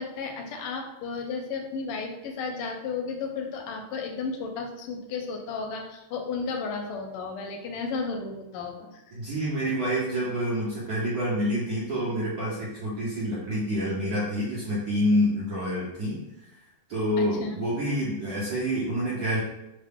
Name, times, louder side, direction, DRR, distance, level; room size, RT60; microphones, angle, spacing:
voice 1, 0.0-9.0 17.2-17.6, left 4 dB, 85° left, 3 dB, 1.5 m, -33 dB
voice 2, 9.1-16.2 16.9-19.4, equal, 65° right, -7 dB, 0.9 m, -27 dB
3.7 x 2.1 x 3.5 m, 0.91 s
omnidirectional pair, 2.4 m